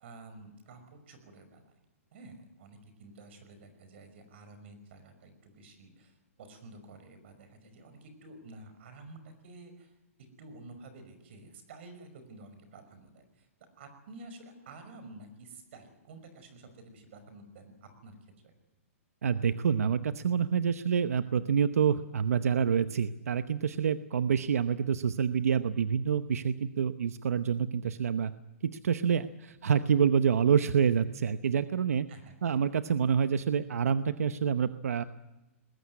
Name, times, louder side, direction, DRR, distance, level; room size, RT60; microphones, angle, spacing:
voice 1, 0.0-1.8 2.1-9.9 10.2-13.5 13.8-18.2 18.4-18.5 32.1-32.6, right 2 dB, 50° right, 9 dB, 5.5 m, -51 dB
voice 2, 19.2-28.3 28.6-32.1 32.4-35.0, right 7 dB, 90° right, 11 dB, 0.9 m, -27 dB
21.0 x 16.0 x 9.6 m, 1.1 s
hypercardioid pair, 160°, 8 cm